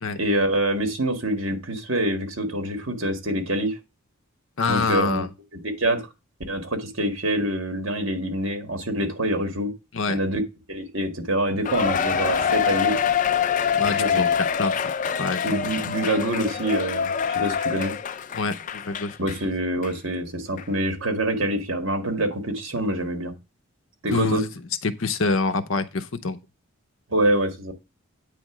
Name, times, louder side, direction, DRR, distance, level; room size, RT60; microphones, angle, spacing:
voice 1, 0.2-3.8 4.7-5.3 5.5-6.1 6.5-9.7 10.1-10.4 10.7-13.0 13.7-14.3 15.4-17.9 19.2-23.3 24.0-24.4 27.1-27.7, right 1 dB, 60° right, 1.8 m, -26 dB
voice 2, 4.6-5.3 9.9-10.2 13.8-14.7 15.2-15.6 18.3-19.2 24.1-24.5 24.8-26.4, left 4 dB, 65° left, 0.7 m, -26 dB
Cheering, 11.6-19.4 19.8-19.9 20.6-20.7, left 7 dB, 35° left, 0.3 m, -25 dB
9.0 x 3.4 x 6.0 m
head